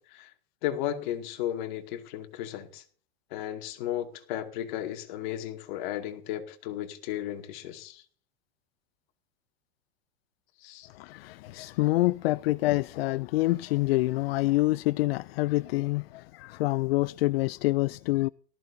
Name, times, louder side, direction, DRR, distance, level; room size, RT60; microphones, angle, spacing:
voice 1, 0.6-2.8 3.3-8.0 10.6-10.9, left 12 dB, 50° left, 2.4 m, -34 dB
voice 2, 10.9-18.3, left 19 dB, 80° left, 0.5 m, -26 dB
18.0 x 14.0 x 2.7 m
supercardioid pair, 170°, 30 cm